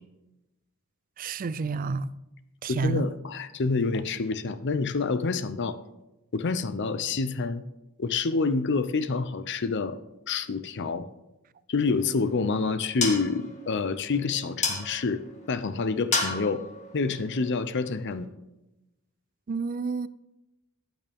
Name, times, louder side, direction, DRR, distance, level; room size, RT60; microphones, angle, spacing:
voice 1, 1.2-2.1 2.6-3.1 19.5-20.1, right 4 dB, 40° right, 0.4 m, -29 dB
voice 2, 2.7-5.8 6.3-7.6 8.0-10.0 10.3-11.1 11.7-16.6 16.9-18.3, left 4 dB, 55° left, 0.6 m, -28 dB
sound 1, 11.8-18.2, left 4 dB, 35° left, 1.7 m, -34 dB
14.0 x 9.0 x 3.5 m
head